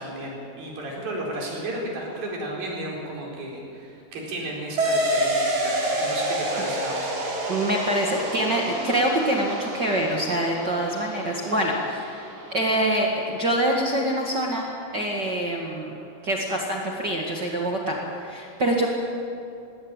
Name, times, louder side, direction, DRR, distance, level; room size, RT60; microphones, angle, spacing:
voice 1, 0.0-7.1, right 1 dB, 85° right, -2 dB, 6.1 m, -33 dB
sound 1, 4.8-13.8, right 1 dB, 55° right, 4.9 m, -29 dB
voice 2, 7.5-16.0 16.2-18.9, right 1 dB, 40° right, -1 dB, 1.9 m, -25 dB
19.5 x 17.5 x 8.9 m, 2.6 s
omnidirectional pair, 4.0 m